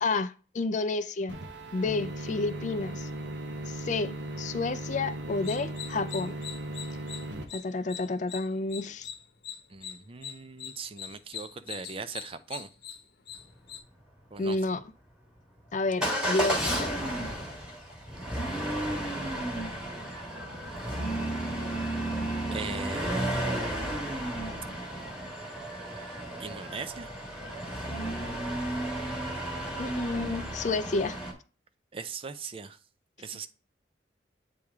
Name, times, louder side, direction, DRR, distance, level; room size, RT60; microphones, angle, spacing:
voice 1, 0.0-1.4 1.7-3.1 3.7-6.4 7.5-9.1 14.4-14.8 15.7-17.0 29.8-31.2, left 3 dB, 40° left, 0.4 m, -30 dB
sound 1, 1.3-7.4, right 1 dB, 75° right, 1.0 m, -37 dB
sound 2, 5.3-13.8, left 9 dB, 60° left, 0.9 m, -43 dB
voice 2, 9.7-12.7 14.3-14.6 22.5-23.7 26.4-27.1 31.9-32.8 33.2-33.5, right 4 dB, 30° right, 0.4 m, -39 dB
Motor vehicle (road) / Engine starting / Accelerating revving vroom, 16.0-31.3, right 1 dB, 5° right, 1.5 m, -33 dB
8.5 x 3.2 x 3.5 m
head